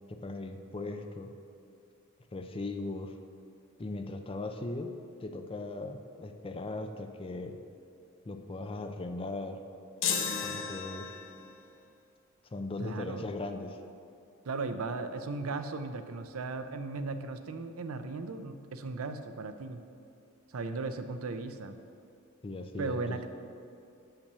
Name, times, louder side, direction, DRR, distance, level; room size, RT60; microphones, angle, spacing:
voice 1, 0.1-1.3 2.3-3.1 3.8-4.9 5.2-7.6 8.2-9.6 10.4-11.1 12.5-13.8 22.4-23.3, left 2 dB, 25° left, 6 dB, 0.5 m, -38 dB
sound 1, 10.0-11.5, left 6 dB, 60° left, 0.8 m, -33 dB
voice 2, 12.8-13.3 14.5-19.8 20.5-21.8 22.8-23.3, right 3 dB, 80° right, 9 dB, 0.5 m, -36 dB
6.8 x 5.8 x 6.7 m, 2.6 s
head